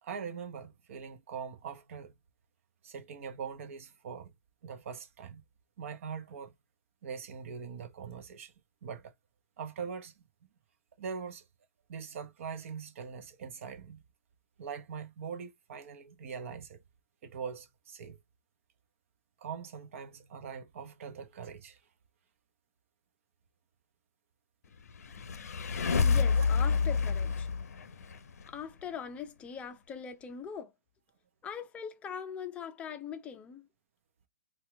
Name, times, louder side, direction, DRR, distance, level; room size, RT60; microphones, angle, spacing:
voice 1, 0.0-2.1 2.8-4.3 4.6-5.4 5.8-6.5 7.0-8.5 8.8-9.1 9.6-10.2 11.0-11.4 11.9-14.0 14.6-16.8 17.2-18.2 19.4-21.8 26.3-26.5, right 6 dB, 45° right, 0.8 m, -42 dB
sound 1, 24.9-28.5, left 5 dB, 55° left, 0.7 m, -28 dB
voice 2, 26.0-27.5 28.5-30.7 31.4-33.7, left 7 dB, 10° left, 0.6 m, -41 dB
4.4 x 2.4 x 3.3 m
figure-of-eight pair, 125°, 10 cm